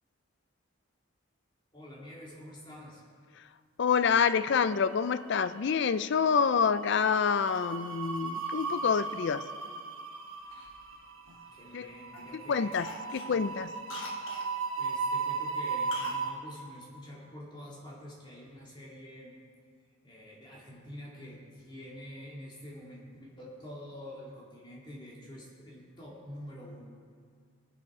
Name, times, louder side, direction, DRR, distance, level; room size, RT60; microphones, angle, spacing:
voice 1, 1.7-3.0 11.5-12.8 13.3-13.4 14.8-19.3 20.0-26.8, equal, 20° left, -4 dB, 2.2 m, -47 dB
voice 2, 3.8-9.4 11.7-11.9 12.3-12.9 13.1-13.7, left 6 dB, 55° left, 14 dB, 0.4 m, -27 dB
sound 1, 4.3-5.0 5.3-5.6 6.8-16.3, right 4 dB, 80° right, 1.1 m, -36 dB
Cough, 10.5-11.8 12.1-12.4 12.7-14.5 15.9-16.3 16.5-16.6, left 2 dB, 70° left, 1.2 m, -43 dB
18.5 x 7.9 x 4.8 m, 2.1 s
head